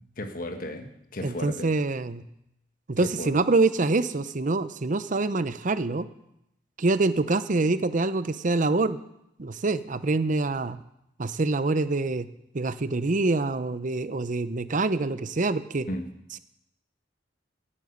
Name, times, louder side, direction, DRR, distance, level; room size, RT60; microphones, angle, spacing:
voice 1, 0.0-1.7 3.0-3.3 15.9-16.1, left 1 dB, 50° left, 6 dB, 1.4 m, -35 dB
voice 2, 1.2-2.3 2.9-6.1 6.8-9.0 9.4-10.8 11.2-12.3 12.5-15.9, right 3 dB, 45° right, 13 dB, 0.7 m, -25 dB
16.5 x 8.7 x 6.7 m, 0.81 s
head